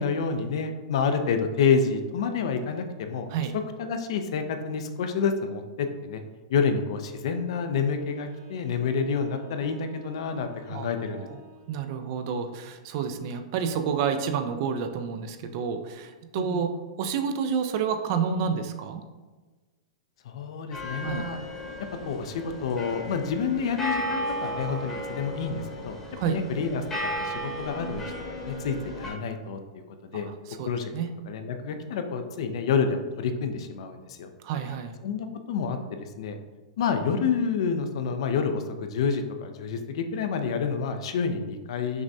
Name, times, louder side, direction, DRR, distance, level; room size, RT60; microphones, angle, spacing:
voice 1, 0.0-3.3 3.8-6.2 6.5-11.3 16.3-16.6 20.3-21.4 22.0-25.9 26.2-28.0 28.3-29.6 30.1-30.3 30.6-30.9 31.3-34.3 35.0-36.4 36.8-42.0, left 5 dB, 60° left, 7 dB, 0.4 m, -28 dB
Wind instrument woodwind instrument, 7.9-12.0, right 1 dB, 90° right, 1.4 m, -53 dB
voice 2, 10.7-11.4 11.7-16.7 17.0-19.0 21.0-21.2 26.2-26.4 30.1-31.1 34.4-34.9, right 7 dB, 40° right, 8 dB, 0.3 m, -29 dB
sound 1, 20.7-29.1, left 1 dB, 15° left, 0.9 m, -34 dB
5.9 x 2.2 x 2.6 m, 1.3 s
supercardioid pair, 160°, 3 cm